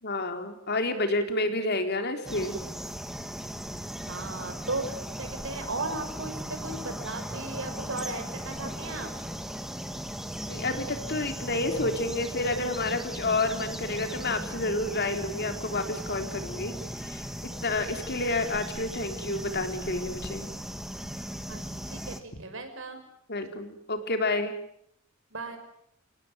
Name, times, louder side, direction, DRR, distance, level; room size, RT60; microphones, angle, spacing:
voice 1, 0.0-2.6 7.4-7.5 10.5-16.7 17.0-17.3 17.6-20.5 23.3-24.6, left 2 dB, 55° left, 6 dB, 3.8 m, -29 dB
sound 1, 2.3-22.2, equal, ahead, 2.1 m, -37 dB
voice 2, 4.1-9.1 21.5-23.0 25.3-25.6, right 2 dB, 65° right, 7 dB, 6.1 m, -36 dB
29.0 x 19.0 x 9.2 m, 0.74 s
head